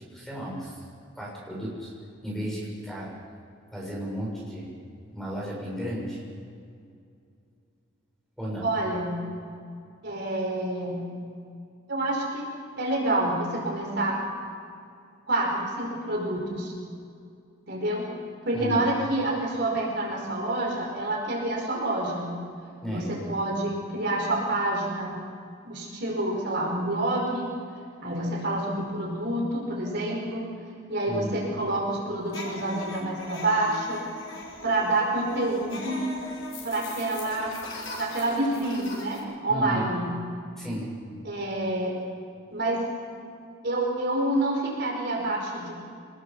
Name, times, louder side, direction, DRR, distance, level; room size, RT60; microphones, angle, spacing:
voice 1, 0.1-0.8 1.1-1.9 2.2-3.1 3.7-4.7 5.1-6.2 8.4-8.7 18.5-18.9 22.8-23.1 31.1-31.4 39.5-39.9 40.6-40.9, equal, ahead, -4 dB, 7.0 m, -33 dB
voice 2, 8.6-9.2 10.0-11.0 11.9-12.5 12.8-14.2 15.3-16.7 17.7-18.1 18.5-22.3 22.9-25.2 25.6-27.5 28.0-30.5 30.9-34.0 34.6-36.0 36.6-37.5 38.0-40.1 41.2-41.9 42.5-42.8 43.6-45.8, right 1 dB, 55° right, -1 dB, 5.4 m, -28 dB
sound 1, 32.3-39.2, left 2 dB, 70° left, 6.1 m, -40 dB
26.0 x 20.5 x 7.3 m, 2.4 s
head